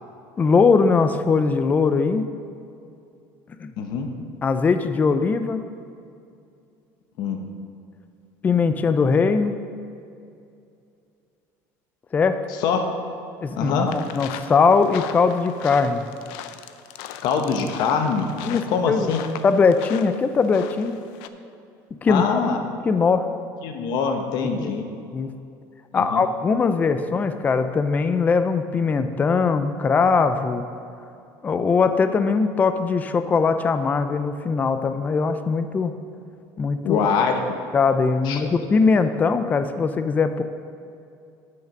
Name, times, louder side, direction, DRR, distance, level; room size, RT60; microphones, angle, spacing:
voice 1, 0.4-2.2 3.6-3.7 4.4-5.6 8.4-9.6 12.1-12.4 13.4-16.0 18.4-19.1 19.4-20.9 22.0-22.5 22.8-23.3 24.6-24.7 25.1-25.3 25.9-30.6 31.4-35.9 36.6-37.0 37.7-40.4, left 5 dB, 20° left, 9 dB, 0.4 m, -20 dB
voice 2, 3.8-4.1 7.2-7.4 12.6-12.9 13.6-13.9 17.2-18.3 18.7-19.2 22.1-22.6 23.6-24.8 25.9-26.2 36.8-37.4 38.2-38.5, left 6 dB, 60° left, 5 dB, 1.0 m, -23 dB
sound 1, 13.9-21.3, left 10 dB, 80° left, 0.5 m, -39 dB
8.4 x 6.5 x 6.0 m, 2.5 s
cardioid pair, 140°, 8 cm